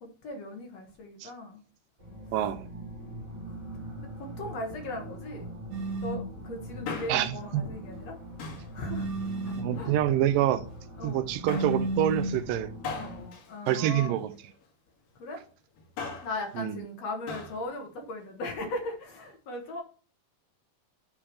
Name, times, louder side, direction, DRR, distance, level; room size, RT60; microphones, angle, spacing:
voice 1, 0.0-1.6 4.0-5.5 6.0-8.2 8.7-9.1 9.5-9.9 11.0-11.2 13.0-14.3 15.2-15.4 16.2-19.8, left 2 dB, 55° left, 2.2 m, -38 dB
sound 1, 2.0-13.3, right 1 dB, 10° right, 2.5 m, -42 dB
voice 2, 2.3-2.7 7.1-7.7 9.6-10.6 11.0-12.7 13.7-14.3 16.6-16.8, right 12 dB, 80° right, 2.2 m, -27 dB
sound 2, 5.7-6.3 8.8-9.8 11.4-12.4, right 2 dB, 55° right, 2.9 m, -32 dB
Male speech man speaking, 6.6-7.4 8.4-8.8 9.6-10.4 11.5-11.9 12.8-14.5 15.8-16.4 17.3-17.6 17.9-18.0, left 5 dB, 75° left, 3.4 m, -39 dB
8.5 x 4.9 x 5.6 m
omnidirectional pair, 4.0 m